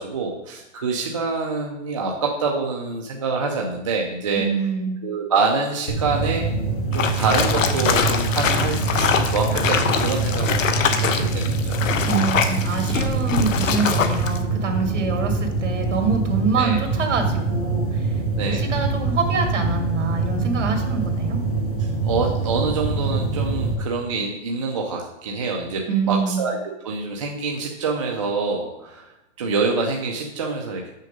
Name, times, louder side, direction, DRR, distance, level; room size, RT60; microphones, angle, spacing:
voice 1, 0.0-4.5 5.0-6.5 6.9-11.8 16.5-16.8 18.4-18.7 21.8-26.6 26.8-29.1 29.4-30.9, right 4 dB, 25° right, 0 dB, 0.5 m, -26 dB
voice 2, 4.4-5.0 12.0-18.2 18.5-21.4 25.9-26.4, right 4 dB, 65° right, 3 dB, 2.1 m, -25 dB
sound 1, 5.9-23.7, right 3 dB, 30° left, 1.3 m, -24 dB
sound 2, 6.9-14.4, left 6 dB, 85° left, 1.0 m, -24 dB
6.4 x 6.2 x 5.1 m, 0.94 s
hypercardioid pair, 165°, 38 cm